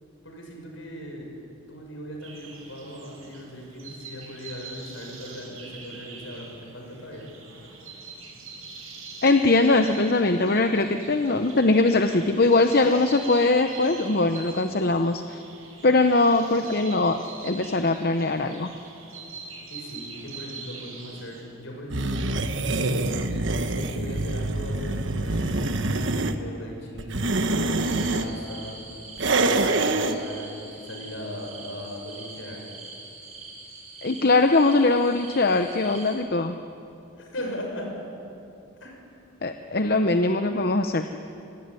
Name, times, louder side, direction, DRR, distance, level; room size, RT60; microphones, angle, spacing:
voice 1, 0.2-1.3 1.7-7.3 16.5-16.6 19.7-22.5 23.6-25.6 25.9-28.8 29.2-32.6 37.2-37.9 38.8-39.0, equal, 70° left, 1 dB, 6.7 m, -38 dB
sound 1, 2.2-21.4, right 4 dB, 90° right, 7.1 m, -43 dB
voice 2, 9.2-15.4 15.8-18.7 34.0-36.6 39.4-41.1, left 2 dB, 45° left, 7 dB, 0.8 m, -21 dB
sound 2, 21.9-26.4 27.0-28.3 29.2-30.2, right 2 dB, 60° right, 1.3 m, -25 dB
sound 3, 27.8-36.1, right 3 dB, 30° right, 6.5 m, -43 dB
25.5 x 18.5 x 9.8 m, 2.8 s
head